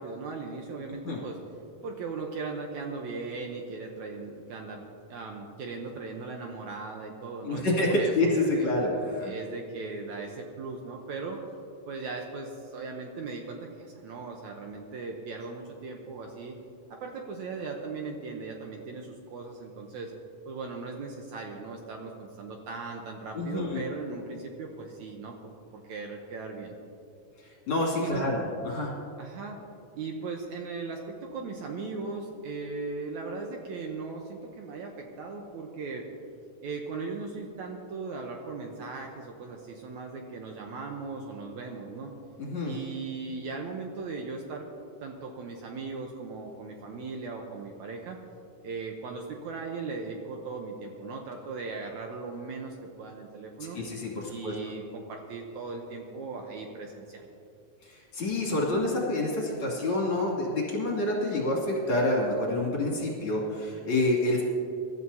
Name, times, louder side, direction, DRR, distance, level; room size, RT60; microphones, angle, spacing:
voice 1, 0.0-1.4 1.8-8.7 9.2-11.4 11.9-16.6 16.9-20.1 20.5-26.7 28.0-28.3 29.2-29.6 30.0-36.1 36.6-42.2 42.7-44.7 45.0-48.2 48.6-53.8 54.3-57.3, right 4 dB, 70° right, 2 dB, 2.0 m, -38 dB
voice 2, 7.5-9.3 23.3-23.8 27.7-28.9 42.4-42.7 53.7-54.5 57.8-64.4, left 1 dB, 40° left, -4 dB, 3.2 m, -27 dB
24.0 x 12.5 x 2.8 m, 2.7 s
omnidirectional pair, 3.9 m